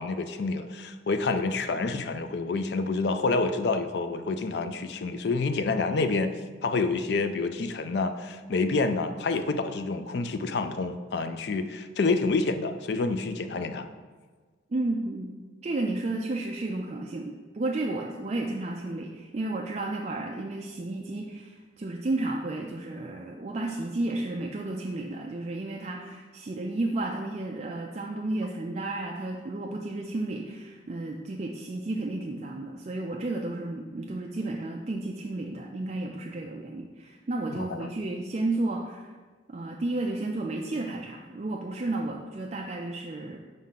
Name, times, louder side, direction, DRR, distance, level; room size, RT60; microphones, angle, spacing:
voice 1, 0.0-6.3 6.6-13.9 37.5-37.9, left 3 dB, 60° left, 9 dB, 0.4 m, -28 dB
voice 2, 14.7-15.3 15.6-39.1 39.5-43.4, right 2 dB, 35° right, 0 dB, 0.4 m, -32 dB
5.2 x 3.6 x 5.7 m, 1.4 s
head